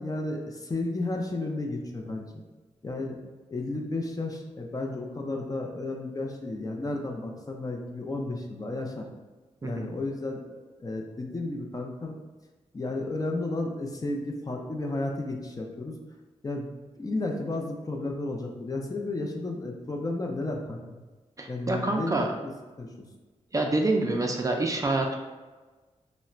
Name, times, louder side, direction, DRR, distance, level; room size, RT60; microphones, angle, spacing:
voice 1, 0.0-2.4 2.8-3.2 3.5-9.1 9.6-10.5 10.8-12.1 12.7-16.0 16.4-16.7 17.0-21.0 21.5-22.5 22.8-22.9, left 2 dB, 30° left, 1 dB, 0.5 m, -33 dB
voice 2, 21.4-22.3 23.5-25.2, right 2 dB, 25° right, 1 dB, 0.4 m, -26 dB
4.1 x 2.1 x 2.4 m, 1.2 s
cardioid pair, 80°, 12 cm